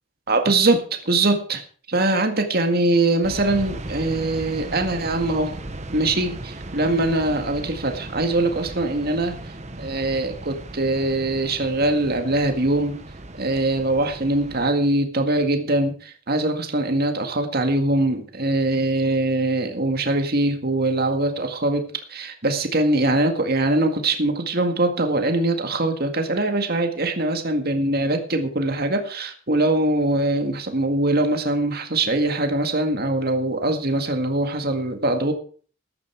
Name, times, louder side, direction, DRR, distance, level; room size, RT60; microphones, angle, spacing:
voice 1, 0.3-1.6 1.9-5.5 5.9-6.4 6.7-9.4 9.8-13.0 13.4-35.3, right 2 dB, 50° right, 5 dB, 1.9 m, -22 dB
sound 1, 3.2-14.7, right 2 dB, 35° right, 1.2 m, -37 dB
14.5 x 11.0 x 4.6 m, 0.42 s
head